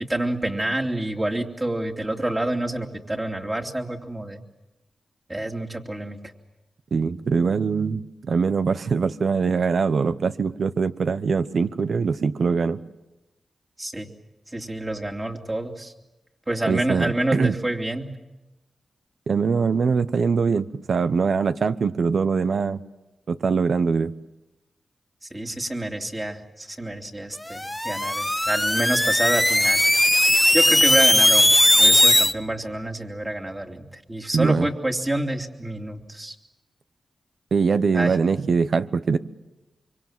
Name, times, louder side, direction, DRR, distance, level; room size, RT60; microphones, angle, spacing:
voice 1, 0.1-4.4 5.3-6.2 13.8-14.1 14.5-15.9 16.5-18.1 25.3-29.8 30.5-31.5 31.8-36.4 37.9-38.2, right 1 dB, 20° right, 3 dB, 2.8 m, -27 dB
voice 2, 6.9-12.8 16.7-17.5 19.3-22.8 23.3-24.1 34.3-34.7 37.5-39.2, right 5 dB, 65° right, 13 dB, 0.9 m, -22 dB
sound 1, 27.5-32.3, left 1 dB, 10° left, 0.8 m, -18 dB
25.0 x 24.5 x 7.5 m, 1.0 s
cardioid pair, 60°, 0 cm